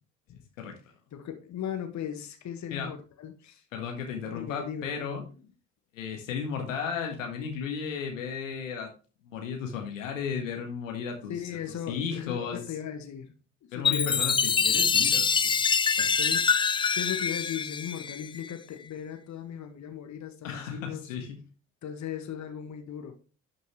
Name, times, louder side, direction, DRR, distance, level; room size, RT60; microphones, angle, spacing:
voice 1, 1.1-3.6 4.3-4.9 11.3-13.3 13.7-14.2 16.0-16.5 16.9-21.1 21.8-23.1, left 9 dB, 45° left, 1.7 m, -37 dB
voice 2, 3.7-5.2 5.9-8.9 9.2-11.3 11.9-12.6 13.7-15.6 16.0-16.1 20.4-21.4, left 6 dB, 75° left, 1.7 m, -34 dB
Chime, 13.8-18.5, left 6 dB, 15° left, 0.3 m, -25 dB
11.5 x 6.3 x 3.1 m
figure-of-eight pair, 50°, 39 cm